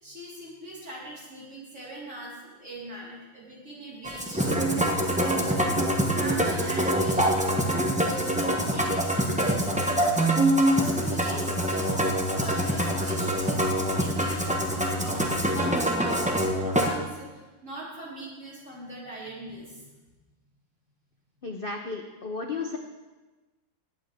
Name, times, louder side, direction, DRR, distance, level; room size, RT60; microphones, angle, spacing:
voice 1, 0.0-5.7 6.1-10.0 10.6-11.9 12.3-19.9, right 1 dB, 35° right, -7 dB, 4.3 m, -40 dB
Musical instrument, 4.0-16.9, right 1 dB, 10° right, 0.4 m, -25 dB
voice 2, 21.4-22.8, left 4 dB, 70° left, 2 dB, 0.5 m, -33 dB
19.0 x 9.0 x 3.4 m, 1.2 s
omnidirectional pair, 2.1 m